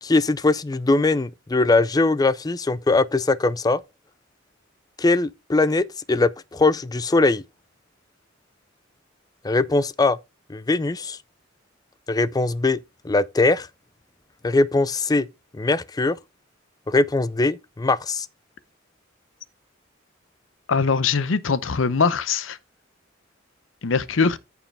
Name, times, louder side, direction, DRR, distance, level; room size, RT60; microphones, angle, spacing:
voice 1, 0.0-3.8 5.0-7.4 9.4-10.2 10.5-11.2 12.1-12.8 13.0-13.7 14.4-15.3 15.5-16.2 16.9-18.3, left 3 dB, 20° left, 0.4 m, -21 dB
voice 2, 20.7-22.6 23.8-24.4, left 5 dB, 75° left, 0.7 m, -22 dB
14.5 x 4.8 x 3.4 m
head